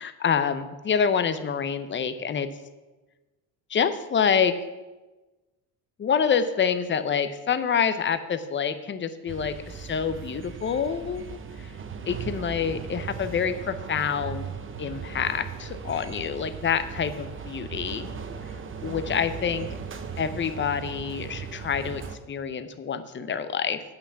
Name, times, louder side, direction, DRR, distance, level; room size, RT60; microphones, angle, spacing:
voice 1, 0.0-2.5 3.7-4.5 6.0-11.4 12.1-14.4 14.8-18.1 18.8-19.7 20.2-22.0 22.3-23.8, left 7 dB, 30° left, 11 dB, 0.7 m, -27 dB
sound 1, 9.3-22.2, right 6 dB, 30° right, 0.9 m, -38 dB
9.0 x 5.8 x 6.9 m, 1.2 s
cardioid pair, 110°, 40 cm